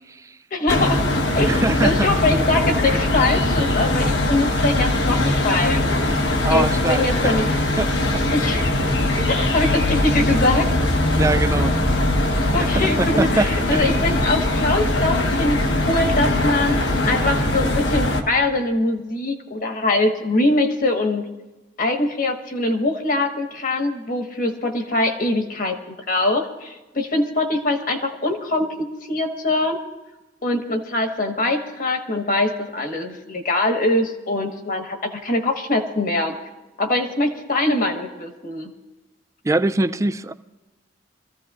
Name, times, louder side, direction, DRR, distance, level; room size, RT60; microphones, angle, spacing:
voice 1, 0.5-1.0 1.3-5.8 6.5-7.5 8.3-8.6 9.3-10.9 12.5-16.8 17.0-21.2 21.8-25.8 26.1-29.8 30.4-36.3 36.8-38.7, left 2 dB, 50° left, 1.4 m, -23 dB
sound 1, 0.7-18.2, left 1 dB, 75° left, 1.2 m, -21 dB
voice 2, 1.4-2.1 6.4-7.3 7.8-8.2 9.2-9.3 11.2-11.8 12.3-14.1 39.4-40.3, right 2 dB, 15° right, 0.3 m, -24 dB
24.0 x 14.5 x 2.5 m
head